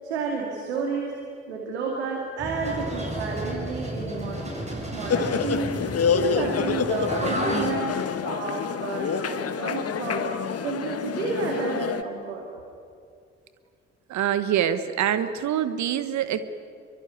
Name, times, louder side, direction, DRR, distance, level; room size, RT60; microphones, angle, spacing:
voice 1, 0.0-1.2 1.5-4.6 4.9-5.7 6.1-10.3 10.6-12.5, right 4 dB, 85° right, 0 dB, 2.5 m, -31 dB
sound 1, 2.4-7.7, right 1 dB, 20° right, 7.7 m, -32 dB
sound 2, 5.1-12.0, left 6 dB, 45° left, 1.5 m, -27 dB
voice 2, 14.1-16.4, right 10 dB, 60° right, 12 dB, 1.2 m, -25 dB
25.0 x 23.5 x 9.5 m, 2.3 s
figure-of-eight pair, 40°, 32 cm